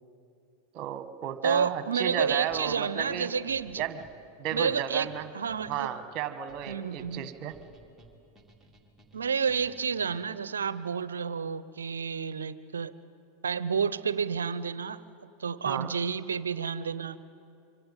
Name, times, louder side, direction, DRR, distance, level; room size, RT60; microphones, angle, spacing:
voice 1, 0.7-3.3 3.8-4.0 4.4-5.3 5.7-7.5 15.7-15.9, right 10 dB, 45° right, 11 dB, 1.6 m, -33 dB
voice 2, 1.4-3.8 4.5-5.1 5.3-5.9 6.7-7.3 9.1-12.9 13.4-15.0 15.4-17.2, right 6 dB, 75° right, 16 dB, 0.8 m, -30 dB
sound 1, 2.5-10.4, right 2 dB, 10° right, 2.8 m, -57 dB
25.5 x 25.0 x 7.4 m, 2.6 s
figure-of-eight pair, 90°, 0 cm